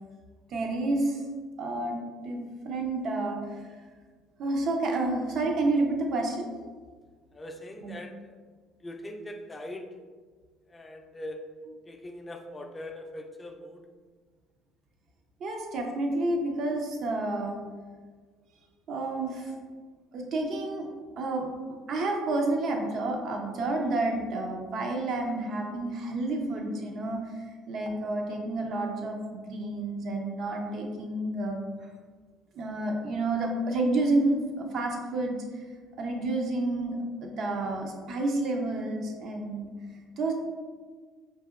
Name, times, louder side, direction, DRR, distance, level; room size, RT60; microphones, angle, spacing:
voice 1, 0.5-1.2 1.6-2.0 2.2-3.6 4.4-6.5 7.8-7.9 15.4-17.6 18.9-19.5 20.1-20.9 21.2-27.2 27.7-31.6 32.5-35.6 36.0-39.7 40.2-40.3, right 2 dB, 60° right, 2 dB, 0.6 m, -30 dB
voice 2, 7.3-8.4 8.8-9.9 10.7-11.4 11.9-13.9, left 1 dB, 20° left, 4 dB, 0.4 m, -41 dB
4.1 x 2.7 x 2.4 m, 1.5 s
supercardioid pair, 80°, 0 cm